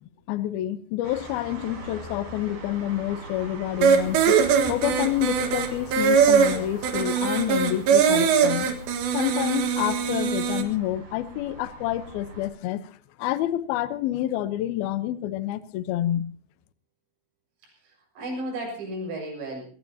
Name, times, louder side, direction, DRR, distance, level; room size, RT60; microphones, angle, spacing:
voice 1, 0.0-8.7 9.1-12.9 13.2-16.3, left 13 dB, 75° left, 2.3 m, -28 dB
sound 1, 1.0-12.5, right 2 dB, 50° right, 6.4 m, -42 dB
sound 2, 3.8-10.6, right 7 dB, 70° right, 3.7 m, -21 dB
voice 2, 17.6-19.8, right 1 dB, 85° right, 9.4 m, -34 dB
22.0 x 19.0 x 2.9 m
omnidirectional pair, 5.5 m